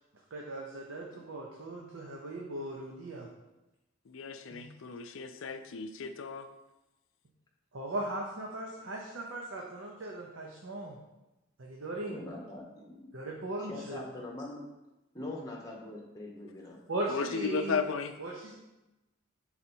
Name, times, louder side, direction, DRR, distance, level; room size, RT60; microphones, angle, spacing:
voice 1, 0.3-3.3 4.5-4.6 7.7-11.0 11.6-12.2 13.1-14.0 16.9-17.8 18.2-18.6, right 1 dB, 70° right, -1 dB, 0.7 m, -38 dB
voice 2, 4.1-6.5 17.1-18.1, left 5 dB, 70° left, 8 dB, 0.4 m, -35 dB
voice 3, 12.1-13.1 13.6-14.6 15.1-16.8, left 2 dB, 20° left, -2 dB, 1.0 m, -42 dB
5.1 x 4.2 x 4.4 m, 1.0 s
head